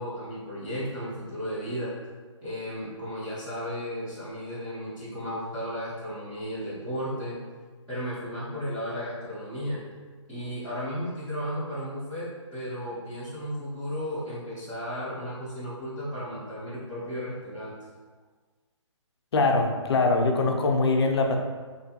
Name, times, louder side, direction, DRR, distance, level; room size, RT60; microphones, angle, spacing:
voice 1, 0.0-1.9 2.4-7.4 7.9-9.8 10.3-17.7, equal, 5° right, -14 dB, 0.4 m, -34 dB
voice 2, 19.3-21.4, left 3 dB, 55° left, 3 dB, 0.4 m, -23 dB
2.5 x 2.3 x 2.6 m, 1.5 s
hypercardioid pair, 160°, 16 cm